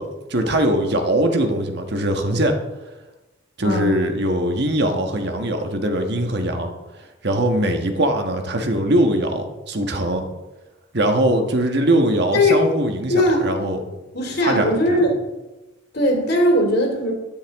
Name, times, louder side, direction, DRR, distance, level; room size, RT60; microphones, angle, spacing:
voice 1, 0.0-2.5 3.6-6.7 7.2-10.3 10.9-13.1 13.4-13.8 14.4-15.0, right 1 dB, 55° right, 5 dB, 1.4 m, -21 dB
voice 2, 3.6-3.9 12.3-12.6 13.1-13.5 14.1-15.2 15.9-17.1, left 1 dB, 55° left, 1 dB, 2.8 m, -19 dB
13.5 x 11.0 x 3.6 m, 1.1 s
head